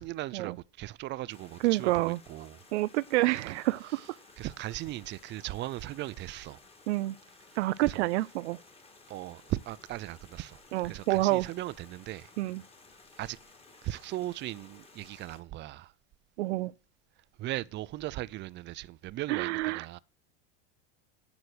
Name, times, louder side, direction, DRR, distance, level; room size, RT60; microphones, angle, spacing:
voice 1, 0.0-2.6 3.9-4.0 4.4-6.6 7.8-8.1 9.1-10.6 10.8-12.3 13.2-13.4 13.8-15.9 17.4-20.0, right 16 dB, 35° right, 0.5 m, -38 dB
sound 1, 1.3-15.4, left 3 dB, 15° left, 2.3 m, -56 dB
voice 2, 1.6-2.2 2.7-4.0 6.9-7.1 7.6-8.6 10.7-11.5 12.4-12.6 16.4-16.7 19.3-19.9, right 18 dB, 85° right, 0.5 m, -28 dB
9.8 x 6.2 x 6.1 m
supercardioid pair, 125°, 33 cm